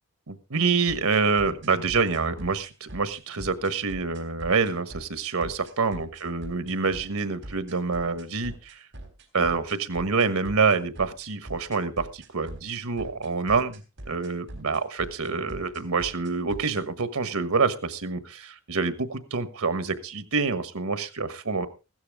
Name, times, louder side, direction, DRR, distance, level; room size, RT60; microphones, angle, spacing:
voice 1, 0.3-8.9 9.3-21.7, right 4 dB, 90° right, 12 dB, 1.4 m, -27 dB
sound 1, 0.9-16.8, right 1 dB, 55° right, 3.5 m, -42 dB
15.5 x 12.5 x 3.6 m, 0.30 s
head